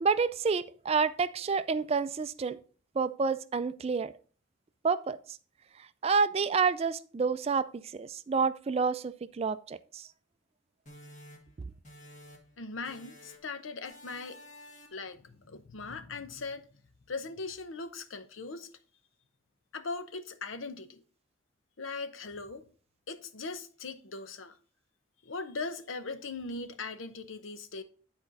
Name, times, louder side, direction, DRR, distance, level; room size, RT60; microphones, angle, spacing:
voice 1, 0.0-2.6 3.0-4.1 4.8-5.4 5.8-10.1 11.6-11.7, right 5 dB, 30° right, 0.3 m, -29 dB
sound 1, 10.9-12.6 12.8-13.5 13.8-15.1, left 1 dB, 40° left, 1.6 m, -52 dB
voice 2, 12.6-14.4 14.7-16.7 17.1-18.7 19.7-21.0 21.8-22.7 23.1-24.6 25.2-27.8, left 3 dB, 80° left, 0.8 m, -40 dB
10.0 x 4.4 x 4.0 m
head